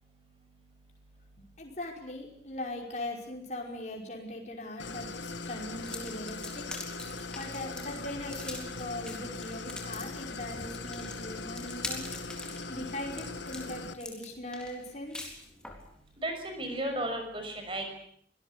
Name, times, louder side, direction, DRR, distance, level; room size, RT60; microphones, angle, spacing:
voice 1, 1.6-5.1 5.5-6.7 7.4-12.1 12.7-15.2, left 1 dB, 40° left, 1 dB, 5.4 m, -40 dB
Idling, 4.8-13.9, left 3 dB, 80° left, 1.7 m, -40 dB
sound 1, 5.8-15.9, left 2 dB, 5° left, 3.9 m, -43 dB
voice 2, 16.2-17.9, right 1 dB, 30° right, 5 dB, 6.1 m, -34 dB
25.0 x 19.0 x 8.3 m, 0.65 s
head